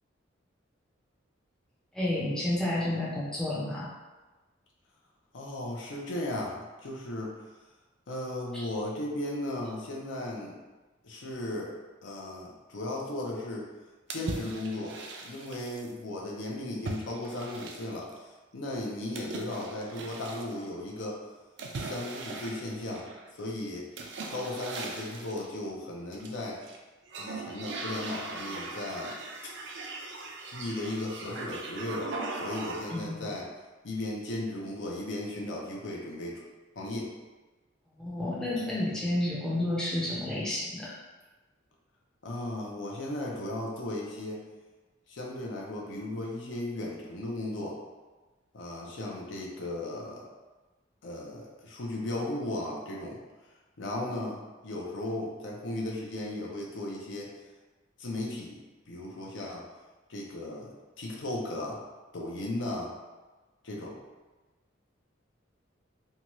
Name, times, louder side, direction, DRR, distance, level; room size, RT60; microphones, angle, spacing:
voice 1, 1.9-3.9 8.5-8.7 32.9-33.3 38.0-41.0, left 1 dB, 5° left, -7 dB, 0.5 m, -31 dB
voice 2, 5.3-7.5 8.1-10.6 11.0-11.7 12.0-13.7 14.1-21.2 21.7-23.1 23.3-23.9 24.3-26.6 27.2-29.1 30.5-33.4 33.8-36.4 36.8-37.1 42.2-44.4 45.1-47.8 48.5-50.2 51.0-53.2 53.8-57.3 58.0-59.6 60.1-61.8 62.1-62.9 63.6-63.9, left 1 dB, 75° left, -2 dB, 0.6 m, -36 dB
sound 1, 14.1-15.9 16.8-18.1 19.1-20.5 21.6-23.3 24.0-25.5 26.1-26.8 27.1-33.1, right 3 dB, 65° right, 0.4 m, -39 dB
2.7 x 2.3 x 2.9 m, 1.2 s
head